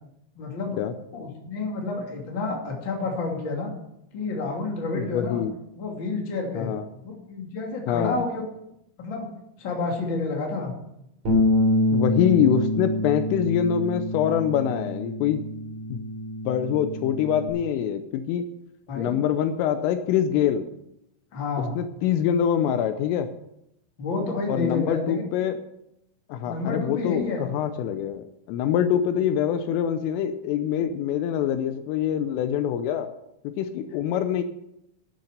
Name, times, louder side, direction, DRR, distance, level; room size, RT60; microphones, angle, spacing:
voice 1, 0.4-0.8 1.1-3.7 4.1-5.4 5.8-6.7 7.0-8.4 9.0-9.3 9.6-10.7 18.9-19.2 21.3-21.7 24.0-25.2 26.4-27.5, left 3 dB, 30° left, 0 dB, 2.3 m, -29 dB
voice 2, 4.9-5.5 6.6-6.9 7.9-8.2 11.9-15.4 15.9-16.0 16.4-18.5 19.0-20.7 21.8-23.3 24.5-25.6 26.3-33.1 33.4-34.4, left 9 dB, 80° left, 9 dB, 3.2 m, -25 dB
Bass guitar, 11.2-17.5, left 1 dB, 35° right, 4.4 m, -26 dB
10.5 x 10.5 x 6.6 m, 0.81 s
omnidirectional pair, 6.0 m